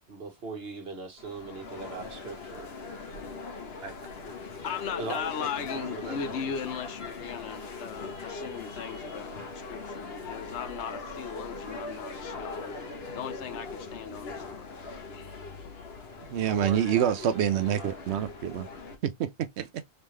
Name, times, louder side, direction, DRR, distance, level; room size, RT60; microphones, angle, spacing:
voice 1, 0.1-2.7 3.8-4.0 5.0-5.5 5.7-6.3 16.5-18.2, right 4 dB, 60° right, 1.6 m, -40 dB
sound 1, 1.2-19.0, left 3 dB, 65° left, 1.3 m, -41 dB
voice 2, 4.6-15.5, left 7 dB, 85° left, 1.1 m, -38 dB
voice 3, 16.3-18.7 19.0-19.8, right 9 dB, 80° right, 0.9 m, -27 dB
3.9 x 3.6 x 3.1 m
omnidirectional pair, 1.1 m